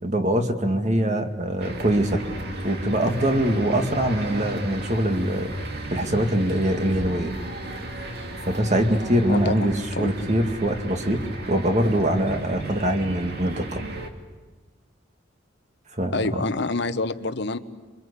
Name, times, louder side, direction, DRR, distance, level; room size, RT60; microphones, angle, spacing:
voice 1, 0.0-2.2 2.6-5.5 5.9-7.3 8.4-13.8 16.0-16.4, right 1 dB, 40° right, 5 dB, 2.2 m, -23 dB
sound 1, 1.6-14.1, right 1 dB, 55° right, 2.5 m, -34 dB
voice 2, 9.3-9.7 9.9-10.1 16.1-17.6, left 3 dB, 60° left, 10 dB, 1.2 m, -27 dB
27.0 x 24.5 x 8.4 m, 1.3 s
head